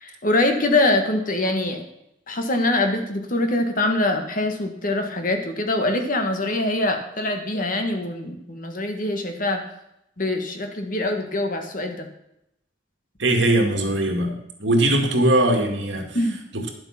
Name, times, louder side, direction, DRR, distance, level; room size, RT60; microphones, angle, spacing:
voice 1, 0.0-1.9 2.3-9.6 10.2-12.1 16.1-16.4, left 2 dB, 45° left, 5 dB, 1.6 m, -24 dB
voice 2, 13.2-16.2 16.5-16.7, right 1 dB, 70° right, 2 dB, 2.2 m, -20 dB
11.0 x 7.7 x 5.9 m, 0.80 s
head